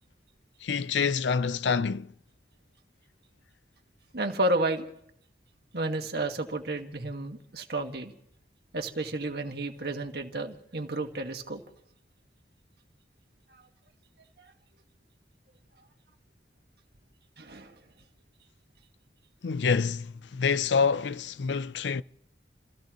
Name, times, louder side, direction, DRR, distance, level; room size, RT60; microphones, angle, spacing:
voice 1, 0.6-2.1 19.4-22.0, left 5 dB, 85° left, 0.5 m, -27 dB
voice 2, 4.1-4.9 5.7-8.1 8.7-11.6 13.5-13.6 17.4-17.7, right 2 dB, 65° right, 1.7 m, -31 dB
29.0 x 16.0 x 3.0 m
head